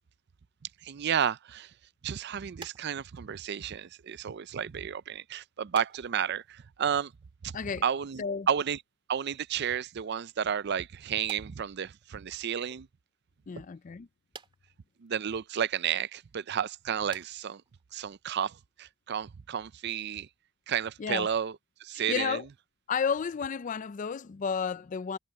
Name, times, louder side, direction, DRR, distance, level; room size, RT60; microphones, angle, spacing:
voice 1, 0.8-1.7 2.0-7.1 7.4-7.5 7.8-8.8 9.1-12.9 15.0-17.6 17.9-20.3 20.7-21.5 21.8-22.4, right 8 dB, 55° right, 0.4 m, -32 dB
sound 1, 2.6-4.3 4.6-4.9 5.7-6.7 7.0-8.1 8.4-8.8 9.7-10.3 11.2-12.4 12.7-12.8 14.3-15.1 15.7-15.8 16.3-16.6 17.0-17.4 17.7-17.9 18.1-18.4 19.0-19.1 19.5-19.6 19.8-19.9, right 4 dB, 25° right, 2.2 m, -51 dB
voice 2, 13.5-14.1 21.0-21.3 22.1-22.5 22.9-25.2, left 6 dB, 40° left, 0.4 m, -32 dB
head